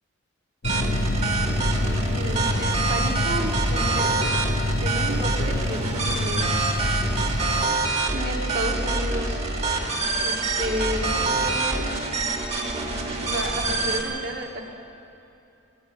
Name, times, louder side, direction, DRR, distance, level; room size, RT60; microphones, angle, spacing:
sound 1, 0.6-7.7, left 2 dB, 60° left, 0.9 m, -28 dB
sound 2, 0.6-14.0, right 3 dB, 30° right, 2.1 m, -26 dB
voice 1, 2.0-4.4 4.8-6.6 8.1-9.5 10.2-12.0 13.2-14.6, equal, 55° right, 1 dB, 2.3 m, -32 dB
20.0 x 19.5 x 7.4 m, 2.9 s
head